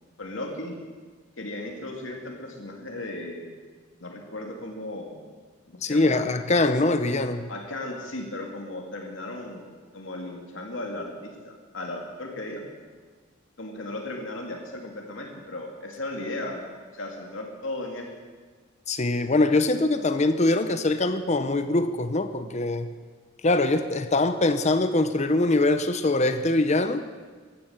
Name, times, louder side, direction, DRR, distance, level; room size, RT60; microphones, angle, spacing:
voice 1, 0.2-0.8 1.4-3.6 4.0-5.2 5.7-6.3 7.5-9.7 9.9-11.1 11.4-12.7 13.6-16.6 16.9-18.1, left 2 dB, 80° left, 2.5 m, -36 dB
voice 2, 5.8-7.5 18.9-22.9 23.4-27.1, left 2 dB, 35° left, 0.8 m, -23 dB
15.5 x 11.5 x 7.2 m
head